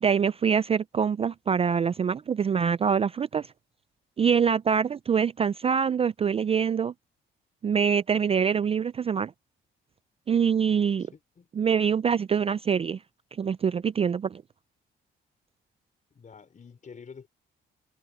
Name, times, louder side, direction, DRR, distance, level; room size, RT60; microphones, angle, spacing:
voice 1, 0.0-3.5 4.2-6.9 7.6-9.3 10.3-11.1 11.6-13.0 13.4-14.4, right 7 dB, 30° right, 0.4 m, -24 dB
voice 2, 11.0-11.5 16.1-17.3, left 6 dB, 40° left, 4.9 m, -48 dB
cardioid pair, 90°, 20 cm